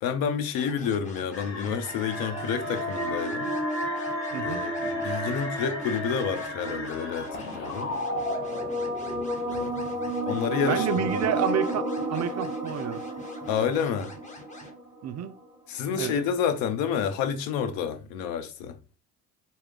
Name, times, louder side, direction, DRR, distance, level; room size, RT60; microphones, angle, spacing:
voice 1, 0.0-3.5 4.4-7.9 9.5-11.1 13.5-14.1 15.7-18.8, left 7 dB, 80° left, 0.7 m, -29 dB
sound 1, 0.5-14.7, left 1 dB, 20° left, 1.2 m, -47 dB
sound 2, 1.3-9.7, left 2 dB, 35° left, 1.9 m, -36 dB
sound 3, 1.7-15.3, right 1 dB, 15° right, 1.1 m, -32 dB
voice 2, 4.3-4.6 10.7-13.0 15.0-15.4 16.0-16.1, right 10 dB, 50° right, 0.5 m, -29 dB
4.3 x 2.1 x 3.8 m
supercardioid pair, 75°, 35 cm